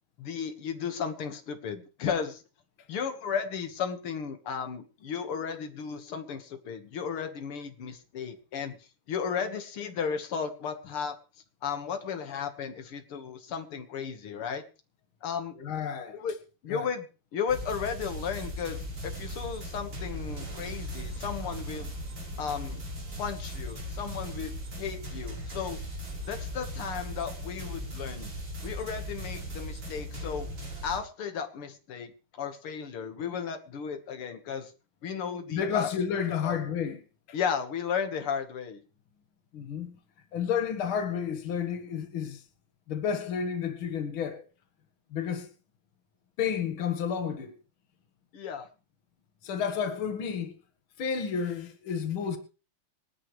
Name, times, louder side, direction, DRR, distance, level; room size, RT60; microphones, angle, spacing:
voice 1, 0.2-2.4 2.9-11.2 11.6-14.6 15.2-15.5 16.1-16.4 16.6-21.9 22.4-22.8 23.2-25.8 26.3-28.3 28.6-30.5 30.8-34.7 35.0-35.9 36.4-36.6 37.3-38.8 48.3-48.7, left 7 dB, 90° left, 2.5 m, -34 dB
voice 2, 15.6-16.2 16.7-16.9 35.5-37.0 39.5-40.0 40.3-42.4 42.9-44.5 45.1-45.5 46.4-47.6 49.4-50.6 51.0-52.4, left 7 dB, 70° left, 2.3 m, -31 dB
sound 1, 17.5-31.0, equal, 85° right, 5.8 m, -38 dB
27.0 x 10.0 x 3.2 m
omnidirectional pair, 2.3 m